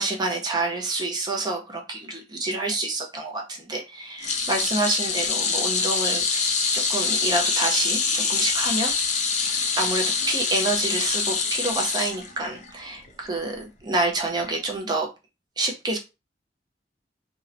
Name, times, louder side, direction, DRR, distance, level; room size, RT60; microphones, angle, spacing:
voice 1, 0.0-8.9 9.8-15.1 15.6-16.0, right 2 dB, 25° right, 0.4 m, -28 dB
sound 1, 4.2-12.7 13.0-13.3 14.5-14.6, left 5 dB, 40° left, 0.5 m, -25 dB
2.7 x 2.0 x 2.4 m
head